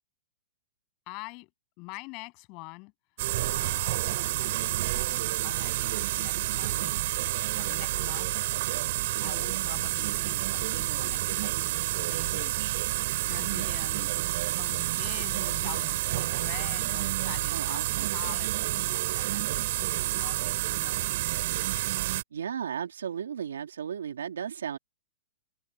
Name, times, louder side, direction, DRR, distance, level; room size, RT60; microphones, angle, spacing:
voice 1, 1.1-1.5 1.8-2.9 3.3-4.0 4.4-7.0 7.4-8.4 9.2-14.3 14.6-21.1, left 29 dB, 40° left, 7.9 m, -45 dB
sound 1, 3.2-22.2, right 17 dB, 55° right, 4.1 m, -29 dB
voice 2, 17.5-18.1 22.3-24.8, right 8 dB, 90° right, 2.8 m, -35 dB
open air
hypercardioid pair, 145°, 0 cm